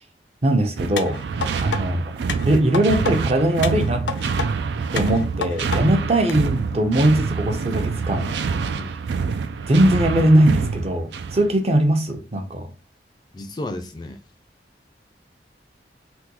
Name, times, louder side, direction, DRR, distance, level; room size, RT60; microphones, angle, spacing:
voice 1, 0.4-1.2 1.6-4.0 4.9-8.3 9.7-12.7, right 1 dB, 35° right, 0.6 m, -20 dB
sound 1, 0.8-11.5, right 5 dB, 80° right, 0.3 m, -26 dB
sound 2, 1.0-1.8 2.3-3.2 3.6-4.5 5.0-5.8 6.3-6.4, left 6 dB, 85° left, 0.5 m, -29 dB
voice 2, 13.3-14.2, left 1 dB, 25° left, 0.3 m, -33 dB
3.4 x 2.2 x 2.9 m
head